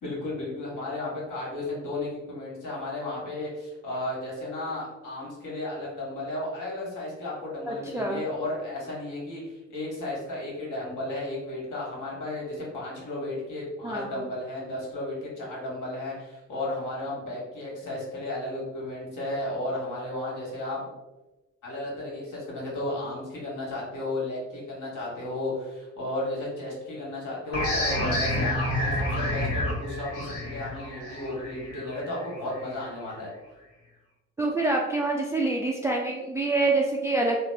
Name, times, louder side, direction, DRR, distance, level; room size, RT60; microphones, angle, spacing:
voice 1, 0.0-20.8 21.6-33.3, left 2 dB, 50° left, -4 dB, 1.5 m, -34 dB
voice 2, 7.7-8.2 13.8-14.2 34.4-37.4, right 2 dB, 10° right, -1 dB, 0.3 m, -26 dB
sound 1, 27.5-32.9, left 1 dB, 35° left, 1.1 m, -29 dB
3.4 x 2.0 x 3.3 m, 1.1 s
figure-of-eight pair, 45°, 39 cm